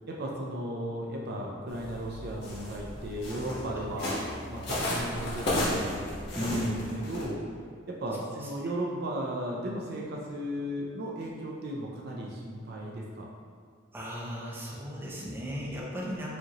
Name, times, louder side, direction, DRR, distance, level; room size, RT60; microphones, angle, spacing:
voice 1, 0.1-7.5 7.9-13.3, right 1 dB, 50° right, -2 dB, 0.4 m, -36 dB
sound 1, 1.7-7.2, left 1 dB, 55° left, 1.1 m, -34 dB
voice 2, 6.3-6.8 13.9-16.4, equal, 10° right, -5 dB, 0.6 m, -35 dB
4.9 x 2.8 x 2.9 m, 2.1 s
head